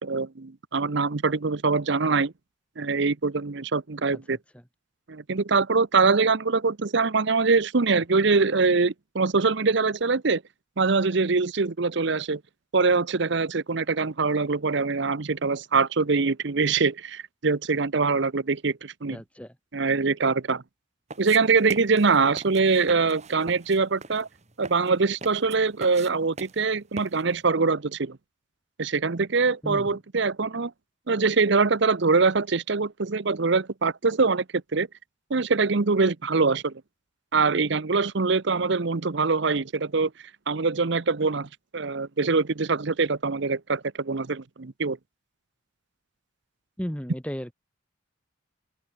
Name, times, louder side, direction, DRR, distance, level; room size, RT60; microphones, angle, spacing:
voice 1, 0.0-2.3 2.8-4.4 5.1-10.4 10.8-12.4 12.7-19.2 19.7-20.6 21.2-24.3 24.6-28.2 28.8-30.7 31.1-34.4 34.7-34.9 35.3-36.7 37.3-40.1 40.5-45.0, right 4 dB, 60° right, 0.8 m, -23 dB
voice 2, 4.1-4.6 19.1-19.5 29.6-30.0 46.8-47.5, equal, 5° left, 1.8 m, -35 dB
sound 1, 21.1-27.4, right 3 dB, 35° right, 2.1 m, -44 dB
head